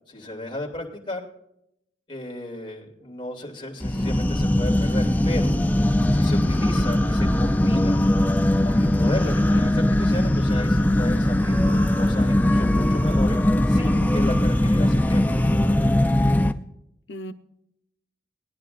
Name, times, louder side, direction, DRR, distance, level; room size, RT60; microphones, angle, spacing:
voice 1, 0.1-1.2 2.1-5.5 6.1-8.0 8.6-11.6 12.0-13.4 13.7-15.3, left 1 dB, 30° left, -1 dB, 2.7 m, -34 dB
sound 1, 3.8-16.5, left 1 dB, 10° left, 0.5 m, -20 dB
voice 2, 9.2-9.7 17.1-17.3, left 1 dB, 75° left, 6 dB, 0.9 m, -37 dB
20.5 x 10.5 x 2.5 m, 0.77 s
head